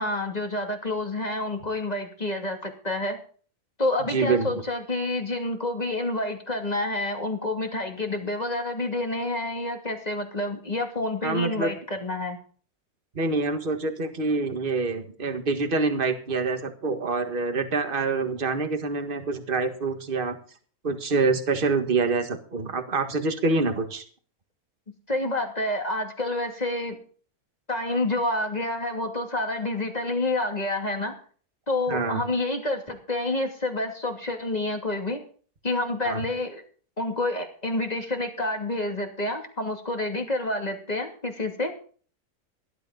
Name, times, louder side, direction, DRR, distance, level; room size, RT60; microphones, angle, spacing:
voice 1, 0.0-3.2 3.8-12.4 25.1-27.0 27.7-31.1 31.7-35.2 35.6-36.6 37.0-41.7, left 2 dB, 25° left, 3 dB, 2.7 m, -28 dB
voice 2, 4.1-4.5 11.2-11.7 13.1-20.4 20.8-24.0 31.9-32.2 36.0-36.2, right 3 dB, 35° right, 7 dB, 1.8 m, -26 dB
18.0 x 12.0 x 4.0 m, 0.43 s
omnidirectional pair, 1.6 m